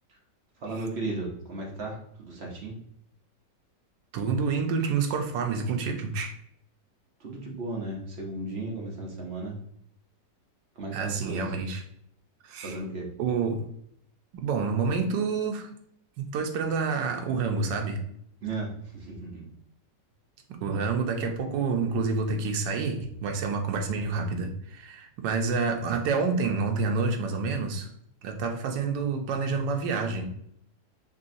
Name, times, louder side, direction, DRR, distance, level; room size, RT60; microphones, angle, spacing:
voice 1, 0.6-2.8 7.2-9.6 10.8-11.5 12.6-13.1 18.4-19.4, right 2 dB, 50° right, -1 dB, 0.8 m, -35 dB
voice 2, 4.1-6.3 10.9-11.8 12.4-12.8 13.2-13.6 14.4-15.7 16.2-18.0 20.6-27.9 28.2-30.3, right 4 dB, 85° right, 4 dB, 1.3 m, -28 dB
4.1 x 3.1 x 2.6 m, 0.70 s
omnidirectional pair, 1.9 m